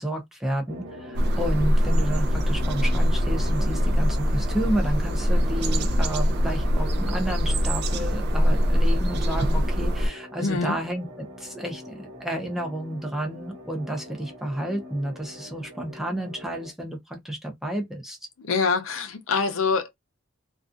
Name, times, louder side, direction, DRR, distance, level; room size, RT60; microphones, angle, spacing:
voice 1, 0.0-11.1 11.4-18.2, right 1 dB, ahead, 0.5 m, -31 dB
sound 1, 0.7-16.7, equal, 75° right, 1.1 m, -42 dB
sound 2, 1.1-10.1, equal, 55° right, 0.4 m, -23 dB
voice 2, 10.4-10.8 18.4-19.9, left 4 dB, 80° left, 0.6 m, -25 dB
2.4 x 2.3 x 2.5 m
head